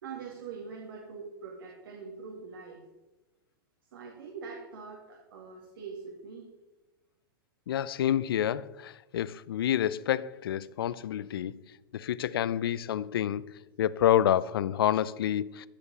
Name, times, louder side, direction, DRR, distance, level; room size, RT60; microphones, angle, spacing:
voice 1, 0.0-2.8 3.9-6.4, right 5 dB, 75° right, 2.4 m, -43 dB
voice 2, 7.7-11.6 11.9-13.5 13.8-15.7, left 11 dB, 85° left, 0.5 m, -28 dB
15.0 x 5.2 x 6.7 m
supercardioid pair, 150°, 12 cm